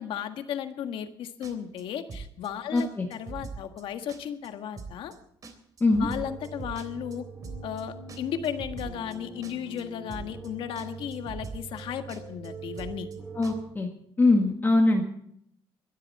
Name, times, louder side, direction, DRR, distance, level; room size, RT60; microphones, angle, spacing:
voice 1, 0.0-5.1 6.0-7.2 7.6-13.1, left 9 dB, 75° left, 7 dB, 1.6 m, -35 dB
sound 1, 1.4-1.8 2.1-2.5 2.8-2.9 3.1-3.8 4.1-4.5 4.8-5.2 5.4-7.2 7.4-7.8 8.1-9.2 9.4-9.8 10.1-10.5 10.8-10.9 11.1-11.8 12.1-12.5 12.8-13.2 13.4-13.5, right 4 dB, 40° right, 3.5 m, -41 dB
voice 2, 2.7-3.1 5.8-6.1 13.4-13.9 14.2-15.0, left 2 dB, 20° left, 2 dB, 1.8 m, -22 dB
sound 2, 5.9-13.6, right 4 dB, 20° right, 2.6 m, -43 dB
22.0 x 12.0 x 4.3 m, 0.70 s
cardioid pair, 115°, 9 cm